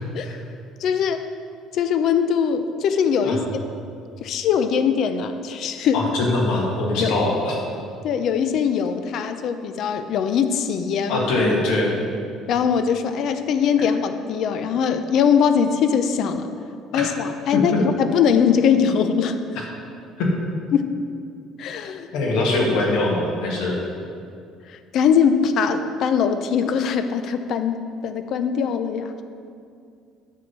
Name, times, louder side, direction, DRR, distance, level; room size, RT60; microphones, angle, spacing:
voice 1, 0.8-1.3 1.7-3.7 4.2-6.3 7.0-7.2 8.0-11.3 12.5-16.5 16.9-19.4 20.7-21.0 21.6-22.1 24.7-29.2, left 7 dB, 45° left, 9 dB, 0.5 m, -21 dB
voice 2, 5.9-7.5 11.1-12.0 16.9-17.0 17.5-17.6 20.2-20.3 22.1-23.8, left 2 dB, 75° left, -1 dB, 2.0 m, -22 dB
11.0 x 3.7 x 7.3 m, 2.4 s
cardioid pair, 170°, 0 cm